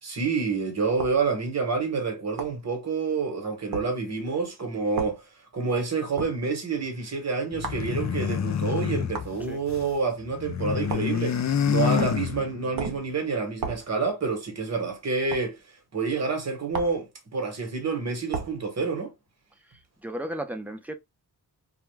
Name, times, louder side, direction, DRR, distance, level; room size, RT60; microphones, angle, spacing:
voice 1, 0.0-5.2 5.5-15.6 15.9-19.1, right 4 dB, 45° right, 1.2 m, -28 dB
sound 1, 1.0-1.2 2.4-2.6 3.7-3.9 5.0-5.2 6.2-6.4 7.6-7.9 9.1-9.3 10.9-11.2 12.0-12.3 12.8-13.1 13.6-13.9 15.3-15.5 16.7-17.0 18.3-18.6, right 5 dB, 60° right, 0.7 m, -33 dB
sound 2, 7.5-9.9 10.2-12.8, left 8 dB, 45° left, 0.5 m, -28 dB
voice 2, 19.7-21.0, right 1 dB, 5° right, 0.6 m, -35 dB
2.4 x 2.3 x 3.0 m
wide cardioid pair, 95°, 38 cm